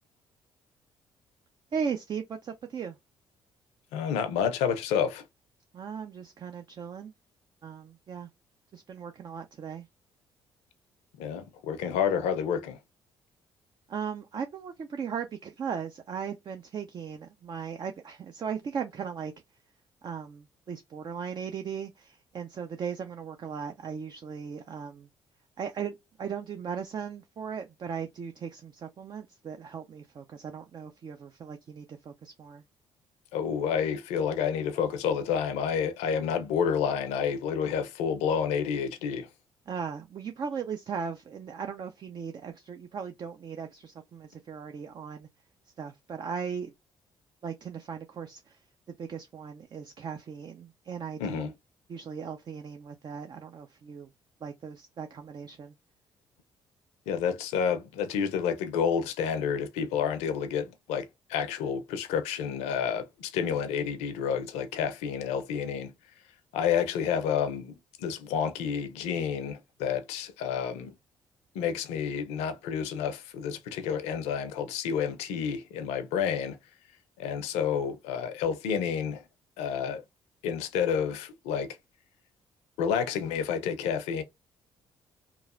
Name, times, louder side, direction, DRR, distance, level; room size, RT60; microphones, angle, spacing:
voice 1, 1.7-3.0 5.7-7.1 7.6-8.3 8.7-9.9 13.9-19.3 20.0-25.1 25.6-32.6 39.7-45.3 45.8-46.7 47.4-48.6 49.0-51.5 51.9-54.1 54.4-55.7, right 6 dB, 40° right, 0.4 m, -37 dB
voice 2, 3.9-5.2 11.2-12.8 33.3-39.3 51.2-51.5 57.1-65.9 66.5-70.9 71.5-76.6 77.2-79.2 79.6-80.0 80.4-81.8 82.8-84.2, left 7 dB, 75° left, 0.5 m, -29 dB
3.0 x 2.3 x 2.5 m
hypercardioid pair, 50°, 11 cm